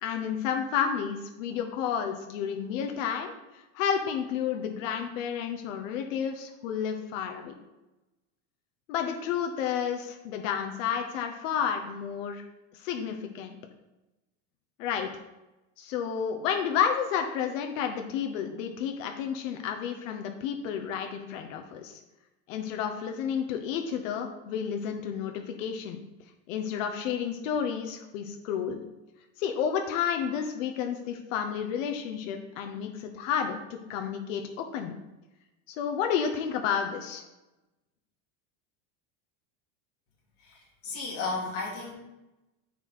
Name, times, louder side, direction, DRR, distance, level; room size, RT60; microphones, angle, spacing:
voice 1, 0.0-3.3 3.7-7.6 8.9-12.4 12.8-13.6 14.8-15.1 15.8-22.0 22.5-26.0 26.5-28.8 29.4-34.9 35.7-37.2, left 8 dB, 85° left, 4 dB, 1.1 m, -31 dB
voice 2, 40.4-41.9, left 3 dB, 40° left, -3 dB, 2.6 m, -34 dB
9.5 x 4.5 x 4.4 m, 1.0 s
cardioid pair, 175°, 38 cm